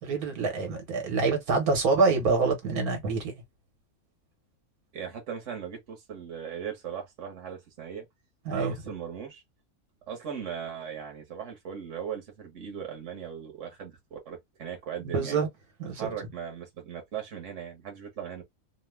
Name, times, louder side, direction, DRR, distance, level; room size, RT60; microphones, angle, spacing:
voice 1, 0.0-3.3 8.4-8.7 15.0-15.5 15.8-16.1, right 4 dB, 90° right, 1.6 m, -26 dB
voice 2, 4.9-8.0 8.5-9.4 10.1-15.4 15.9-18.4, right 8 dB, 60° right, 1.4 m, -38 dB
3.0 x 2.2 x 3.2 m
omnidirectional pair, 1.5 m